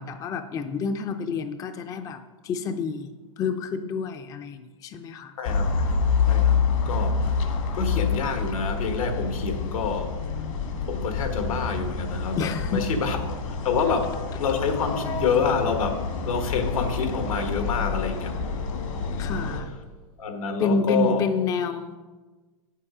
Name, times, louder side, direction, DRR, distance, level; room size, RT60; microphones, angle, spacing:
voice 1, 0.0-5.3 12.4-12.8 13.8-13.9 19.2-19.7 20.6-22.0, left 4 dB, 20° left, 8 dB, 0.4 m, -29 dB
voice 2, 5.4-5.8 6.3-7.5 7.7-10.2 10.9-18.4 20.2-21.3, left 5 dB, 85° left, 6 dB, 1.5 m, -27 dB
sound 1, 5.4-19.6, left 5 dB, 65° left, 1.6 m, -27 dB
8.2 x 7.4 x 4.9 m, 1.3 s
hypercardioid pair, 135°, 17 cm